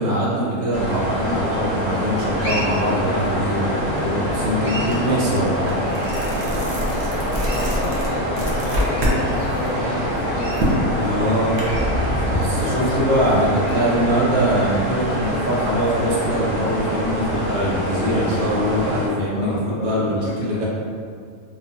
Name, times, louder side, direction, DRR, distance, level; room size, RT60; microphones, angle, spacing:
voice 1, 0.0-5.8 11.0-11.6 12.3-20.7, equal, 80° right, -6 dB, 1.2 m, -22 dB
sound 1, 0.7-19.1, equal, 40° left, 1.0 m, -25 dB
sound 2, 4.9-5.1 5.5-9.2 9.6-11.6, equal, 65° right, 0.7 m, -25 dB
voice 2, 7.4-10.6 12.6-13.1 13.3-14.2 19.3-20.7, left 2 dB, 75° left, -2 dB, 1.0 m, -32 dB
sound 3, 8.3-14.3 14.8-14.9, equal, 40° right, 0.9 m, -33 dB
3.0 x 2.2 x 2.5 m, 2.1 s
omnidirectional pair, 1.6 m